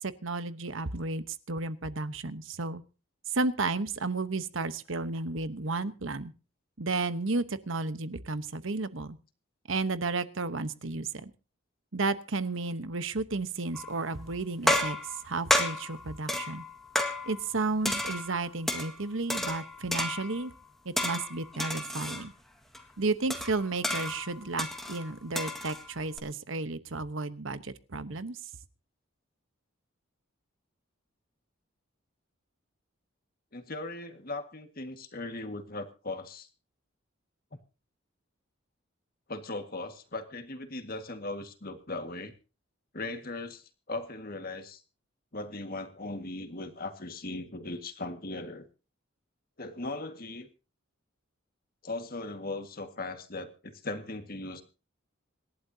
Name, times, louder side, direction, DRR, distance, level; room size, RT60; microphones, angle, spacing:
voice 1, 0.0-2.8 3.3-6.3 6.8-9.2 9.7-11.3 11.9-15.0 15.2-16.6 17.2-20.5 20.8-22.3 23.0-28.4, right 3 dB, 70° right, 12 dB, 1.1 m, -33 dB
sound 1, 13.7-14.1 14.7-17.6 17.8-18.9 19.3-20.5 21.0-22.3 22.7-22.8 23.3-26.2, left 1 dB, ahead, 1.8 m, -32 dB
voice 2, 33.5-36.5 39.3-42.3 42.9-44.8 45.3-48.7 49.6-50.5 51.8-54.6, left 2 dB, 45° left, 7 dB, 1.8 m, -38 dB
26.5 x 11.5 x 2.8 m, 0.33 s
head